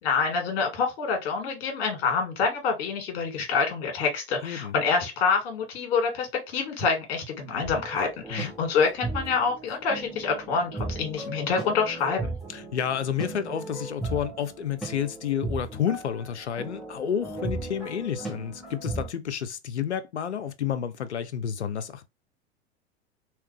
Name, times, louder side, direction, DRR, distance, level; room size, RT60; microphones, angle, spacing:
voice 1, 0.0-12.3, left 5 dB, 55° left, 2.0 m, -26 dB
voice 2, 4.4-4.7 8.3-8.5 12.5-22.1, left 8 dB, 80° left, 0.6 m, -30 dB
sound 1, 7.6-19.1, right 2 dB, ahead, 1.5 m, -36 dB
3.2 x 3.0 x 3.3 m
figure-of-eight pair, 85°, 33 cm